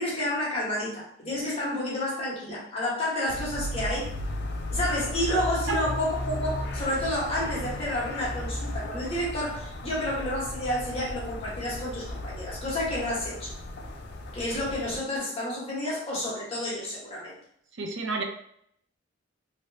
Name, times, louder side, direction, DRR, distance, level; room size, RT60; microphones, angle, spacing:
voice 1, 0.0-4.1 4.7-13.5 14.3-17.4, left 1 dB, 30° left, -6 dB, 1.3 m, -30 dB
sound 1, 3.3-15.0, left 1 dB, 55° left, 0.5 m, -35 dB
voice 2, 17.8-18.2, right 4 dB, 65° right, 3 dB, 0.6 m, -30 dB
3.1 x 2.9 x 2.7 m, 0.68 s
head